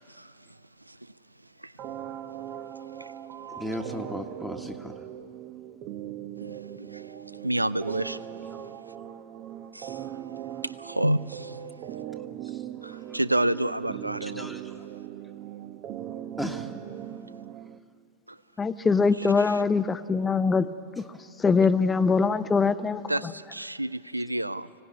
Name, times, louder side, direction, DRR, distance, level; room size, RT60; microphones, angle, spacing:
voice 1, 0.1-0.6 0.9-1.1 1.6-1.7 3.0-3.1 6.4-8.3 9.7-10.1 10.6-11.6 12.8-14.5 18.3-18.4 19.4-19.6 23.1-24.7, right 1 dB, 85° right, 17 dB, 0.5 m, -30 dB
sound 1, 1.8-17.8, right 11 dB, 40° right, 0.9 m, -40 dB
voice 2, 3.6-4.9 14.2-14.7 16.4-16.7, equal, ahead, 3 dB, 1.4 m, -35 dB
voice 3, 18.6-20.7 21.0-21.1 21.4-23.3, left 4 dB, 15° left, 13 dB, 0.8 m, -23 dB
24.0 x 17.5 x 9.6 m, 2.5 s
figure-of-eight pair, 90°, 0 cm